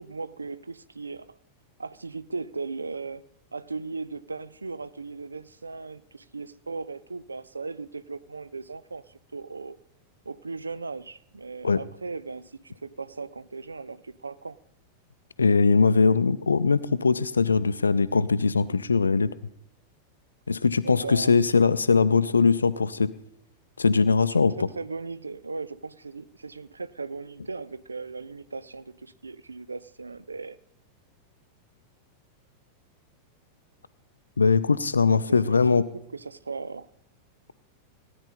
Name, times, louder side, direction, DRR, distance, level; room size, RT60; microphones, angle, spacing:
voice 1, 0.0-1.4 1.8-9.8 10.3-14.6 20.8-21.4 24.3-24.5 24.8-30.6 35.1-35.2 35.4-35.6 36.1-36.9, right 4 dB, 80° right, 16 dB, 0.4 m, -37 dB
voice 2, 15.4-19.3 20.5-23.1 23.8-24.7 34.4-35.9, left 4 dB, 75° left, 15 dB, 0.4 m, -21 dB
17.0 x 9.7 x 4.1 m, 0.79 s
figure-of-eight pair, 90°, 0 cm